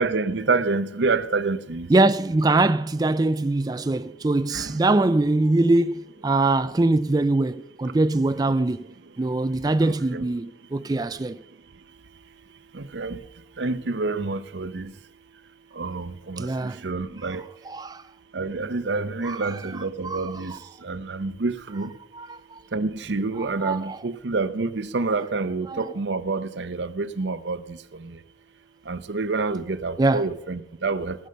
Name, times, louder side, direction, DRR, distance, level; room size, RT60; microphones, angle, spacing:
voice 1, 0.0-1.9 4.5-4.7 9.8-10.2 12.9-13.2 13.6-14.9 15.8-17.4 18.3-20.5 20.8-21.9 22.7-27.8 28.9-31.3, right 3 dB, 80° right, 0.7 m, -27 dB
voice 2, 1.9-8.8 9.2-11.4 16.4-16.8 17.7-18.0 19.2-19.6 20.0-20.6 22.1-22.6 23.4-24.0 25.7-25.9 30.0-30.3, right 2 dB, 20° right, 0.4 m, -23 dB
17.5 x 6.6 x 6.7 m
head